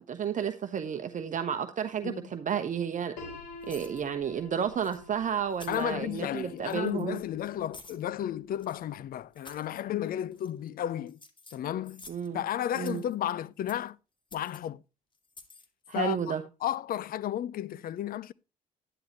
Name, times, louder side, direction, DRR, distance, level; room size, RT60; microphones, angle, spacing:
voice 1, 0.0-3.2 3.7-7.2 12.1-12.4 12.8-13.0 15.9-16.4, right 8 dB, 40° right, 1.0 m, -32 dB
Piano, 3.2-9.0, left 2 dB, 80° left, 3.6 m, -49 dB
sound 1, 3.6-4.0 4.8-5.0 5.5-5.9 6.6-7.1 7.7-8.0 8.6-8.8 9.3-9.7 10.3-10.7 11.1-12.3 12.7-13.2 13.7-13.9 14.3-14.6 15.2-15.7, left 3 dB, 25° left, 2.2 m, -51 dB
voice 2, 5.7-11.2 11.5-12.1 12.3-14.0 14.3-14.8 15.9-16.2 16.6-18.3, left 11 dB, 50° left, 0.6 m, -33 dB
11.0 x 10.5 x 3.0 m
hypercardioid pair, 55°, 20 cm